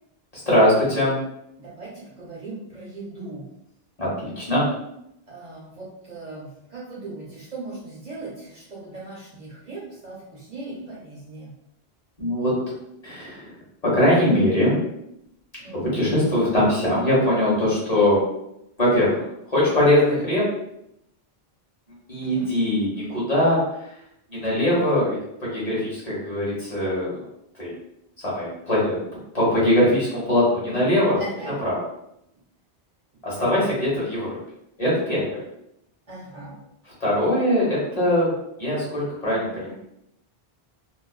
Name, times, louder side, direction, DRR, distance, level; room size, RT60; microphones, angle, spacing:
voice 1, 0.5-1.1 4.0-4.6 12.2-12.6 13.0-13.5 13.8-14.8 15.7-18.2 18.8-20.5 22.1-23.6 24.3-27.2 27.6-27.7 28.2-29.0 29.3-31.2 31.6-31.8 33.2-34.4 34.8-35.4 37.0-38.3 38.6-39.7, left 1 dB, 40° left, -7 dB, 1.1 m, -21 dB
voice 2, 1.6-3.5 5.3-11.5 15.6-16.1 18.9-19.2 22.2-22.5 31.2-31.6 33.3-33.7 36.1-36.6, right 2 dB, 50° right, -6 dB, 0.7 m, -39 dB
2.4 x 2.3 x 2.2 m, 0.80 s
omnidirectional pair, 1.0 m